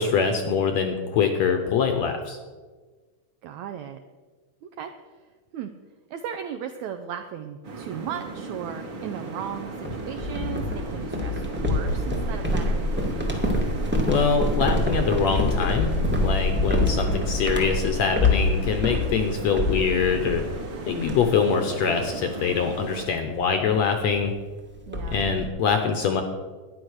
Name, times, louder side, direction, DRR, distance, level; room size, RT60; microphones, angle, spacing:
voice 1, 0.0-2.4 14.1-15.9 16.2-20.5 20.9-24.3 25.1-26.2, left 6 dB, 70° left, 6 dB, 1.7 m, -24 dB
voice 2, 3.4-4.0 4.6-4.9 5.5-5.7 6.1-12.8 24.9-25.2, right 9 dB, 80° right, 6 dB, 1.6 m, -36 dB
sound 1, 7.6-23.1, right 3 dB, 45° right, 2.1 m, -36 dB
sound 2, 9.8-20.7 21.0-21.5 21.8-22.1 22.5-22.7 23.8-23.9 24.1-24.2 24.5-25.4, left 2 dB, 10° right, 0.5 m, -26 dB
12.0 x 10.0 x 6.4 m, 1.4 s
omnidirectional pair, 4.0 m